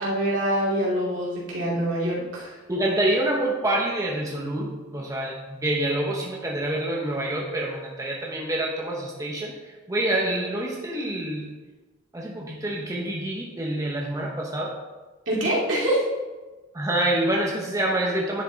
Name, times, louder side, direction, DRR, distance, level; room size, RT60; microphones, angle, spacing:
voice 1, 0.0-2.5 15.3-16.0, right 1 dB, 70° right, -6 dB, 2.9 m, -25 dB
voice 2, 2.7-9.5 9.9-11.4 12.1-14.7 16.7-18.4, right 1 dB, 15° right, -2 dB, 0.9 m, -26 dB
10.5 x 5.3 x 3.9 m, 1.2 s
head